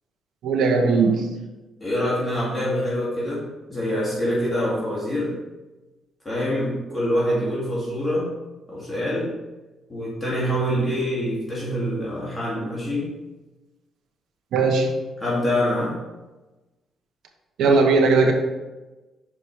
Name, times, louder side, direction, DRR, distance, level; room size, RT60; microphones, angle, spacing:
voice 1, 0.4-1.3 14.5-14.9 17.6-18.3, right 4 dB, 75° right, 2 dB, 1.0 m, -18 dB
voice 2, 1.8-3.4 3.7-5.4 6.2-8.3 8.7-9.3 9.9-13.1 15.2-16.0, equal, 15° left, -6 dB, 2.4 m, -25 dB
5.9 x 4.8 x 4.9 m, 1.1 s
cardioid pair, 90°, 0 cm